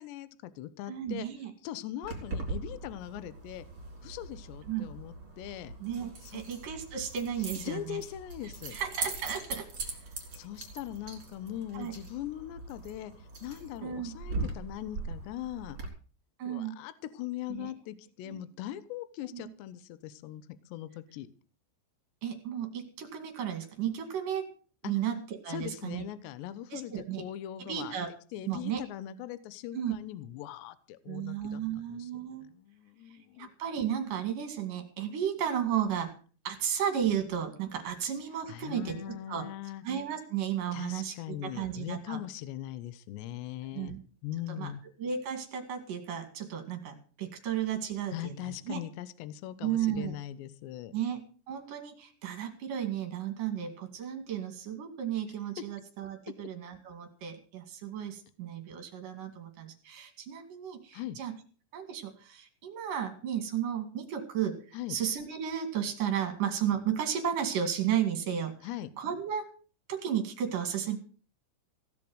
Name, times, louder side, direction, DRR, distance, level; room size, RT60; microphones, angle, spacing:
voice 1, 0.0-1.3 1.6-3.7 4.0-5.7 6.2-6.4 7.6-8.8 10.3-15.8 16.4-20.4 20.7-21.3 25.5-28.0 28.3-33.5 38.5-39.8 40.7-43.9 44.2-44.8 48.1-50.9 60.9-61.2 64.7-65.0 68.6-68.9, left 12 dB, 75° left, 14 dB, 2.7 m, -40 dB
voice 2, 0.9-1.5 4.7-4.8 5.8-8.0 8.7-9.7 11.7-11.9 13.8-14.1 16.4-16.8 17.5-17.7 18.2-18.4 19.3-19.5 22.2-24.5 24.8-25.2 25.4-26.0 26.7-27.2 27.7-28.1 28.4-28.8 29.7-29.9 31.1-32.5 33.4-36.1 36.4-39.5 39.8-42.2 43.7-44.0 44.5-44.7 45.0-48.8 49.6-50.1 50.9-51.2 51.5-61.3 61.7-68.7 69.0-69.5 69.9-71.0, right 9 dB, 50° right, 6 dB, 3.2 m, -34 dB
Keys jangling, 2.0-15.9, right 3 dB, 25° right, 4.5 m, -41 dB
17.0 x 7.2 x 8.0 m, 0.39 s
omnidirectional pair, 6.0 m